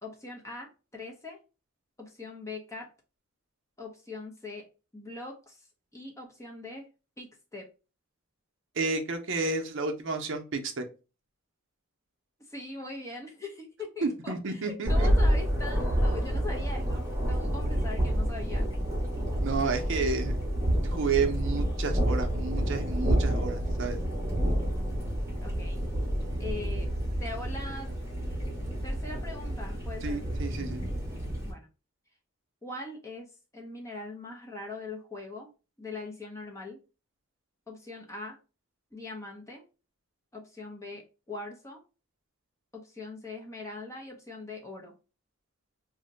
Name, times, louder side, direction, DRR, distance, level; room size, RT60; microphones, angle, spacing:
voice 1, 0.0-1.4 2.0-2.9 3.8-4.6 4.9-5.7 5.9-6.9 7.2-7.7 12.5-18.7 25.4-25.8 26.4-26.9 27.2-27.9 28.8-30.3 31.4-31.7 32.6-33.3 33.5-35.5 35.8-36.8 37.7-38.4 38.9-39.6 40.3-41.8 42.7-44.9, left 2 dB, 15° left, 0 dB, 0.6 m, -41 dB
voice 2, 8.8-10.8 14.0-15.1 19.4-20.4 20.9-24.0 30.0-30.8, right 4 dB, 60° right, 5 dB, 0.6 m, -31 dB
Thunder, 14.8-31.5, equal, 15° right, 0.8 m, -29 dB
2.6 x 2.1 x 3.8 m, 0.32 s
head